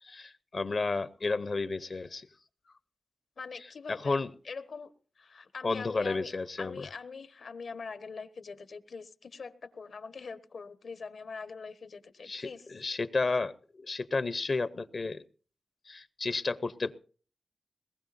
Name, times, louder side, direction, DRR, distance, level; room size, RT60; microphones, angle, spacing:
voice 1, 0.0-2.3 2.7-2.8 3.9-4.3 5.6-6.8 12.2-15.2 15.9-17.0, left 3 dB, 50° left, 14 dB, 0.7 m, -32 dB
voice 2, 3.4-4.2 4.4-6.3 6.6-12.7, left 5 dB, 75° left, 11 dB, 1.3 m, -43 dB
21.5 x 19.5 x 2.6 m, 0.42 s
wide cardioid pair, 120°, 0 cm